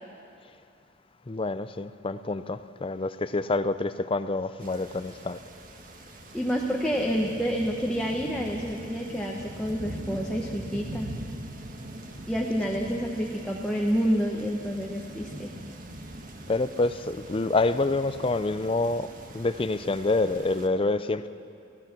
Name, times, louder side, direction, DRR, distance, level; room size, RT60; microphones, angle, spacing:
voice 1, 1.3-5.4 16.5-19.1 19.3-21.3, left 2 dB, 25° left, 13 dB, 0.5 m, -27 dB
sound 1, 4.6-20.7, right 1 dB, 45° right, 1.6 m, -42 dB
voice 2, 6.3-11.1 12.3-15.5, equal, 5° left, -2 dB, 1.3 m, -28 dB
26.5 x 17.0 x 6.1 m, 2.6 s
head